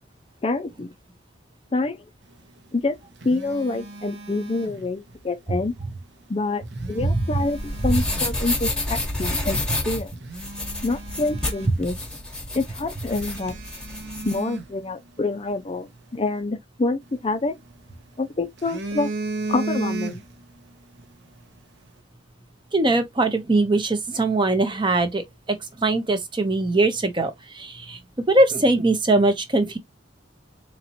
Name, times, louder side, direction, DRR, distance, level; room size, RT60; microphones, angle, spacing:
voice 1, 0.4-0.9 1.7-2.0 2.7-3.0 3.2-5.7 6.3-9.6 9.8-10.1 10.8-12.0 12.5-13.5 14.2-17.6 18.2-19.1 19.5-20.2, left 3 dB, 30° left, 0.4 m, -26 dB
Telephone, 2.7-5.2 6.5-8.4 9.0-9.2 9.7-9.8 10.2-12.2 12.5-12.6 13.1-15.5 17.0-18.0 18.4-20.5 20.8-21.1, right 3 dB, 60° right, 0.8 m, -35 dB
sound 1, 7.3-14.4, left 1 dB, 5° left, 1.1 m, -29 dB
voice 2, 22.7-28.0 28.3-29.8, right 2 dB, 25° right, 0.7 m, -21 dB
4.1 x 3.0 x 2.9 m
head